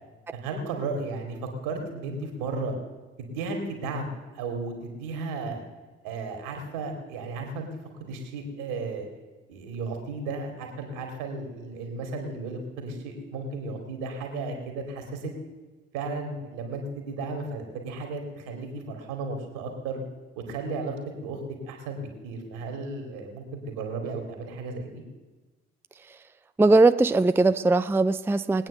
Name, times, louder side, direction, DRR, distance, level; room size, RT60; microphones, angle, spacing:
voice 1, 0.3-1.4 1.6-2.8 3.2-5.6 6.0-7.7 8.0-9.0 9.5-15.3 15.9-20.0 20.4-21.4 21.7-25.0, right 3 dB, 70° right, 4 dB, 2.7 m, -34 dB
voice 2, 26.6-28.7, right 3 dB, 5° right, 12 dB, 0.5 m, -20 dB
20.5 x 9.2 x 6.6 m, 1.2 s
figure-of-eight pair, 40°, 34 cm